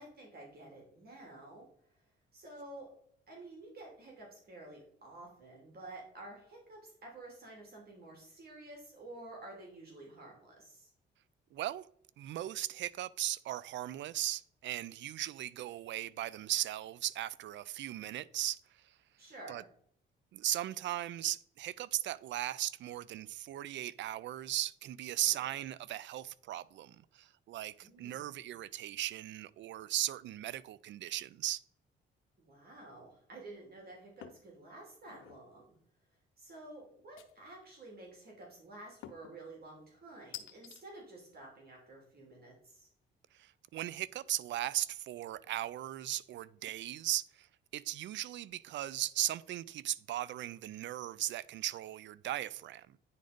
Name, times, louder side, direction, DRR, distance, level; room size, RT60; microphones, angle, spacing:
voice 1, 0.0-1.6 2.3-2.9 3.3-10.9 19.2-19.6 25.2-25.3 27.8-28.3 32.4-35.8 36.4-42.9, right 2 dB, 50° right, 2.9 m, -51 dB
voice 2, 11.5-11.9 12.2-18.6 19.5-19.6 20.3-31.6 43.3-47.5 47.7-53.0, right 13 dB, 70° right, 0.4 m, -37 dB
sound 1, 34.2-34.5 35.0-35.4 37.2-37.7 39.0-39.4 40.3-40.8, left 10 dB, 85° left, 0.8 m, -49 dB
9.7 x 4.0 x 5.1 m
cardioid pair, 90°, 20 cm